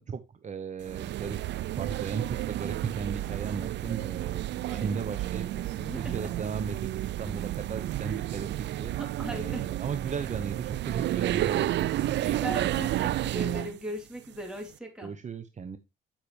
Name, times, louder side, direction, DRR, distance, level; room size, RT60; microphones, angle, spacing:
voice 1, 0.0-1.4 1.8-5.6 5.9-9.0 9.3-12.7 15.0-15.8, right 6 dB, 35° right, 9 dB, 0.8 m, -36 dB
sound 1, 0.8-13.8, right 14 dB, 65° right, 0.4 m, -31 dB
voice 2, 5.7-6.3 7.2-7.4 9.0-9.6 12.4-15.1, equal, 5° right, 1 dB, 3.1 m, -38 dB
8.8 x 5.7 x 3.2 m, 0.24 s
cardioid pair, 90°, 20 cm